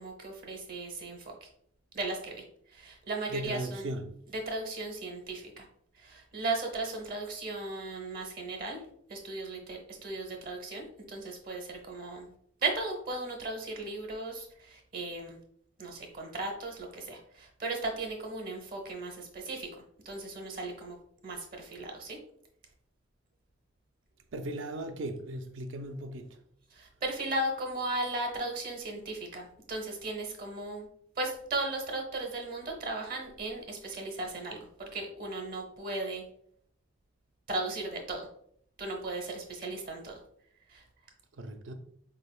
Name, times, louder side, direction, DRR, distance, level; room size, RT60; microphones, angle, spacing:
voice 1, 0.0-1.5 1.9-3.9 4.3-5.6 5.9-8.8 9.1-12.3 12.6-15.4 15.8-19.7 20.0-21.0 21.2-22.2 26.7-30.9 31.2-36.2 37.5-38.3 38.8-40.2 40.7-40.8, right 2 dB, 50° right, 0.8 m, -36 dB
voice 2, 3.3-4.2 24.3-26.4 41.3-41.7, right 1 dB, 75° right, 0.5 m, -37 dB
4.4 x 3.4 x 2.2 m
head